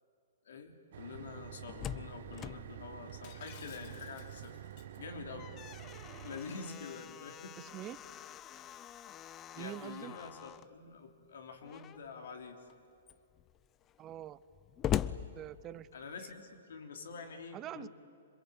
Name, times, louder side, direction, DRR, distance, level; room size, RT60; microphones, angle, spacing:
voice 1, 0.4-4.6 5.0-5.5 6.2-7.6 9.5-12.6 15.9-17.9, left 4 dB, 75° left, 4 dB, 3.4 m, -47 dB
sound 1, 0.9-6.4, right 11 dB, 65° right, 1.1 m, -48 dB
Slam, 1.4-4.2 4.5-4.6 5.1-10.7 11.6-12.2 12.7-12.8 13.0-16.1, left 10 dB, 25° left, 0.5 m, -42 dB
Shatter, 3.2-5.0, left 9 dB, 45° left, 1.9 m, -57 dB
voice 2, 7.6-8.0 9.6-10.1 14.0-14.4 15.4-15.9 17.5-17.9, right 12 dB, 25° right, 17 dB, 0.7 m, -44 dB
26.0 x 22.5 x 8.7 m, 2.4 s
hypercardioid pair, 135°, 0 cm